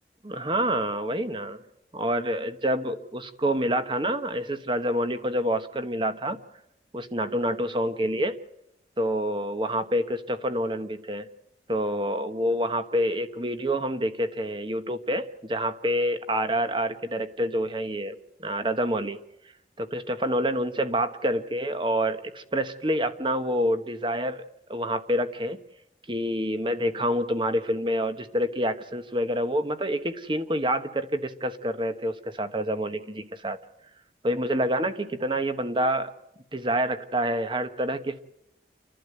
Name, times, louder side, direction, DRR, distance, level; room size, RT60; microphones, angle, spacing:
voice 1, 0.2-1.6 1.9-6.4 6.9-8.4 9.0-11.3 11.7-19.2 19.8-24.4 24.7-25.6 26.1-33.6 34.2-36.1 36.5-38.2, equal, 30° right, 9 dB, 1.2 m, -27 dB
30.0 x 11.5 x 8.0 m, 0.82 s
head